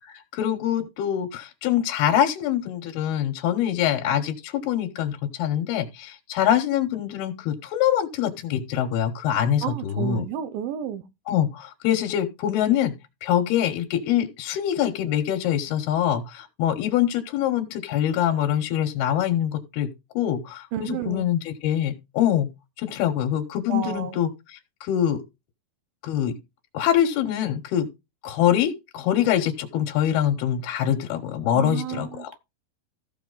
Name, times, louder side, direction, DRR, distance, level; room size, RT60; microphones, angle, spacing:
voice 1, 0.1-10.2 11.3-12.9 13.2-19.9 20.2-22.5 22.8-25.2 26.0-26.3 26.7-27.9 28.2-32.3, left 10 dB, 90° left, 3.0 m, -24 dB
voice 2, 9.6-11.0 20.7-21.3 23.7-24.2 31.5-32.4, right 10 dB, 75° right, 2.5 m, -31 dB
15.0 x 5.7 x 3.9 m
omnidirectional pair, 4.4 m